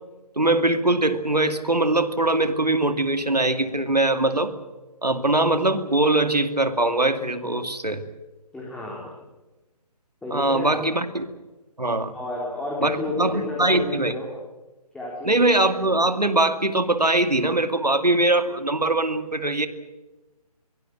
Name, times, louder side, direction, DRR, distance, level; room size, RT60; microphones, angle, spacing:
voice 1, 0.4-4.5 5.0-8.0 10.3-11.3 11.8-12.1 12.8-14.1 15.2-19.7, right 2 dB, 90° right, 9 dB, 2.4 m, -22 dB
voice 2, 8.5-9.1 10.2-10.9 12.1-14.3 14.9-15.3, left 2 dB, 5° left, -3 dB, 3.4 m, -31 dB
23.0 x 19.0 x 9.0 m, 1.1 s
figure-of-eight pair, 145°, 20 cm